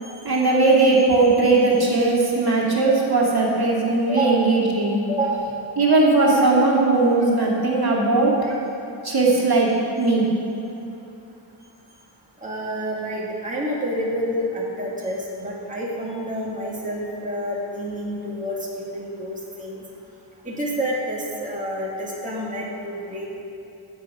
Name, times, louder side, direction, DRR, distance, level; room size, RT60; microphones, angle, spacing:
voice 1, 0.2-5.0 5.8-8.3 9.0-9.7 10.0-10.3, right 3 dB, 50° right, -4 dB, 2.5 m, -18 dB
voice 2, 4.1-4.5 5.1-5.5 7.4-7.5 8.4-8.5 12.4-19.8 20.5-23.3, equal, 15° right, -5 dB, 2.1 m, -28 dB
16.5 x 7.7 x 5.0 m, 2.9 s
wide cardioid pair, 75°, 49 cm